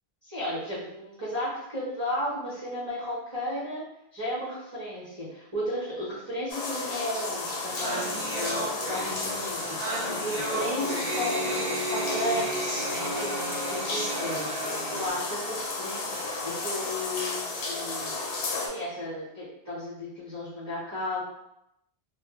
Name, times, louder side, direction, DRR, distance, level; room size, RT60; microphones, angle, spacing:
voice 1, 0.2-3.8 4.1-12.8 13.2-13.4 13.7-14.5 14.9-18.2 18.7-21.2, left 1 dB, 20° right, -9 dB, 0.7 m, -34 dB
sound 1, 6.5-18.7, left 3 dB, 85° left, 0.8 m, -33 dB
sound 2, 7.5-15.1, right 2 dB, 55° right, 0.7 m, -33 dB
2.1 x 2.0 x 2.9 m, 0.83 s
omnidirectional pair, 1.0 m